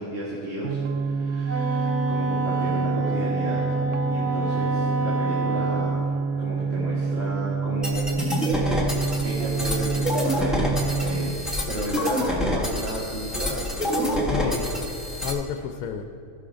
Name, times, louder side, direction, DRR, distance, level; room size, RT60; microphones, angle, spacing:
voice 1, 0.0-3.6 4.1-6.1 6.4-8.1 9.2-14.7, right 1 dB, 45° right, -6 dB, 1.7 m, -33 dB
sound 1, 0.6-11.3, right 5 dB, 85° right, 1.0 m, -27 dB
Wind instrument woodwind instrument, 1.4-6.0, right 1 dB, 15° right, 0.5 m, -29 dB
sound 2, 7.8-15.3, left 1 dB, ahead, 0.9 m, -27 dB
voice 2, 14.3-16.0, left 7 dB, 85° left, 4 dB, 1.0 m, -32 dB
15.5 x 5.8 x 5.0 m, 2.8 s
omnidirectional pair, 1.5 m